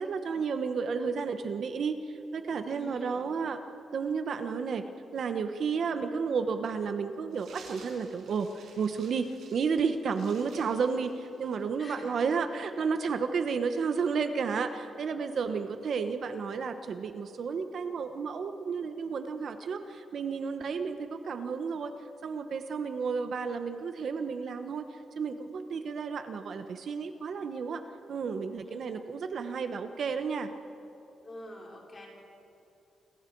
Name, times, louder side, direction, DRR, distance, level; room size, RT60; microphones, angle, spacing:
voice 1, 0.0-2.0 2.3-3.6 3.9-4.9 5.1-21.9 22.2-24.9 25.1-27.8 28.1-30.5, right 5 dB, 50° right, 8 dB, 1.0 m, -32 dB
voice 2, 2.7-3.3 11.8-12.2 28.6-28.9 31.2-32.1, left 1 dB, 25° left, -2 dB, 4.9 m, -47 dB
sound 1, 7.3-11.7, right 4 dB, 75° right, 6.1 m, -54 dB
29.5 x 23.5 x 4.7 m, 2.8 s
wide cardioid pair, 160°, 0 cm